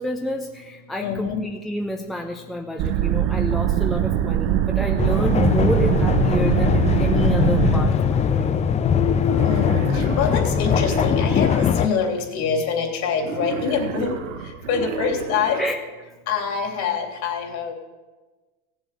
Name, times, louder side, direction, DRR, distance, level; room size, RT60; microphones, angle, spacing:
voice 1, 0.0-8.6 15.6-15.8, equal, ahead, 3 dB, 0.8 m, -29 dB
voice 2, 1.0-1.4 9.4-14.1 14.4-15.7 16.3-17.7, left 6 dB, 50° left, 3 dB, 3.4 m, -25 dB
sound 1, 2.8-7.9, right 11 dB, 40° right, 0.7 m, -22 dB
sound 2, 5.0-11.9, left 7 dB, 20° left, 0.5 m, -21 dB
Wild animals, 9.2-11.7 13.2-15.7, right 5 dB, 80° right, 1.5 m, -32 dB
16.0 x 7.4 x 8.3 m, 1.2 s
hypercardioid pair, 110°, 38 cm